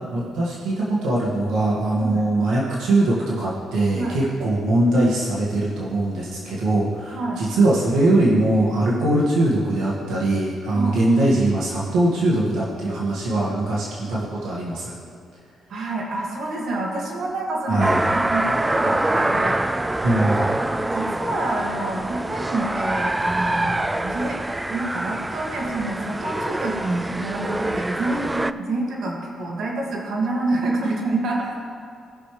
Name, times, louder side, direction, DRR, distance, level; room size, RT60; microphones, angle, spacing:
voice 1, 0.0-14.9 17.7-18.0 20.0-20.5, right 2 dB, 85° right, -6 dB, 1.9 m, -21 dB
voice 2, 15.7-17.9 18.3-19.6 20.4-20.5 20.9-24.4 24.7-31.6, right 2 dB, 65° right, -3 dB, 2.2 m, -27 dB
sound 1, 17.8-28.5, right 1 dB, 15° right, 0.3 m, -25 dB
18.5 x 6.5 x 3.3 m, 2.4 s
cardioid pair, 90°, 0 cm